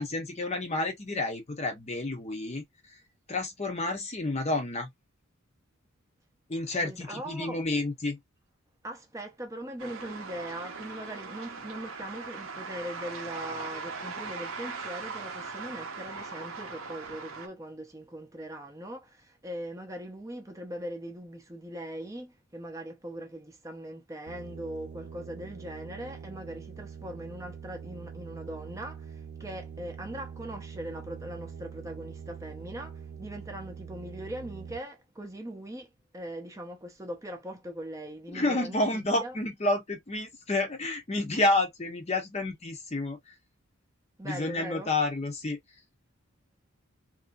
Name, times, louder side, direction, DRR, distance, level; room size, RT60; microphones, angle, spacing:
voice 1, 0.0-3.0 3.3-4.9 6.5-8.2 38.3-43.3 44.2-45.6, left 2 dB, 30° left, 0.7 m, -30 dB
voice 2, 6.8-7.6 8.8-39.3 44.2-44.9, right 1 dB, 15° right, 0.6 m, -40 dB
sound 1, 9.8-17.5, right 4 dB, 70° right, 0.7 m, -40 dB
sound 2, 24.3-34.8, right 6 dB, 50° right, 0.3 m, -44 dB
3.0 x 2.7 x 2.4 m
head